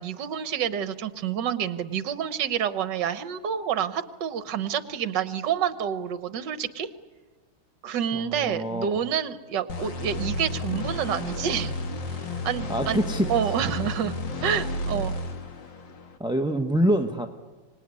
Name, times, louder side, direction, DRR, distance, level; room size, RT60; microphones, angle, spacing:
voice 1, 0.0-6.9 7.8-11.7 12.4-13.0 13.3-15.1, right 8 dB, 65° right, 13 dB, 1.7 m, -28 dB
voice 2, 8.1-9.0 12.7-13.3 16.2-17.3, right 1 dB, 5° right, 6 dB, 0.7 m, -25 dB
sound 1, 9.7-16.2, left 2 dB, 65° left, 2.5 m, -32 dB
25.5 x 19.5 x 9.8 m, 1.4 s
omnidirectional pair, 2.2 m